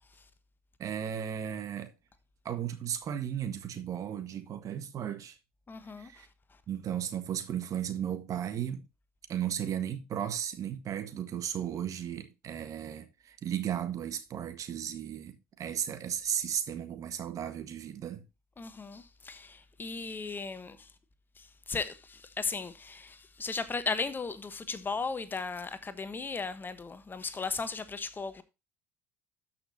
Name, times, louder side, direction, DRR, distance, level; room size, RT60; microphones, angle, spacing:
voice 1, 0.8-1.9 2.4-5.3 6.0-6.3 6.7-8.8 9.3-18.2, right 9 dB, 50° right, 1.5 m, -35 dB
voice 2, 5.7-6.1 18.6-20.9 21.4-28.4, left 4 dB, 25° left, 1.2 m, -36 dB
13.0 x 6.0 x 2.8 m
figure-of-eight pair, 60°, 7 cm